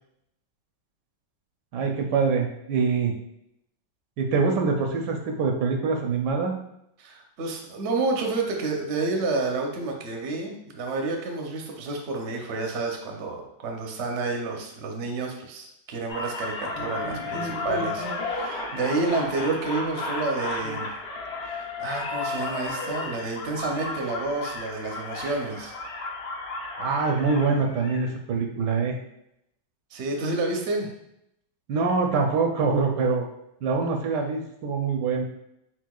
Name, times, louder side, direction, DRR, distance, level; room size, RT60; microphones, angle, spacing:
voice 1, 1.7-3.1 4.2-6.5 26.8-28.9 31.7-33.3 33.6-35.2, right 4 dB, 75° right, 3 dB, 1.1 m, -24 dB
voice 2, 7.0-20.9 21.4-25.7 29.9-30.9, right 3 dB, 60° right, 1 dB, 0.7 m, -29 dB
sound 1, 16.1-28.1, left 3 dB, 60° left, 1.5 m, -33 dB
4.5 x 4.2 x 2.3 m, 0.79 s
omnidirectional pair, 2.0 m